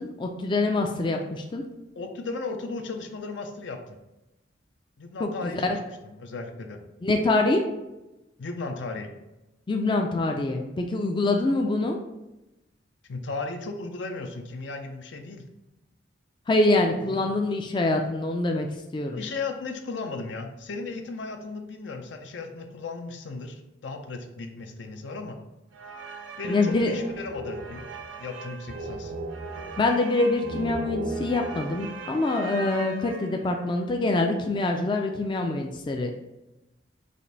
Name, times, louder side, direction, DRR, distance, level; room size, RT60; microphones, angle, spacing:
voice 1, 0.0-1.6 5.2-5.5 7.0-7.7 9.7-12.0 16.5-18.7 18.9-19.2 26.4-26.9 29.8-36.1, left 2 dB, 25° left, 3 dB, 0.3 m, -25 dB
voice 2, 2.0-4.0 5.0-5.8 6.0-6.8 8.4-9.1 13.1-15.4 17.0-17.3 19.1-25.4 26.4-27.8 28.2-29.1, left 3 dB, 75° left, 5 dB, 0.6 m, -35 dB
sound 1, 25.7-33.6, right 2 dB, 85° right, 0.6 m, -37 dB
5.0 x 2.5 x 3.9 m, 0.98 s
head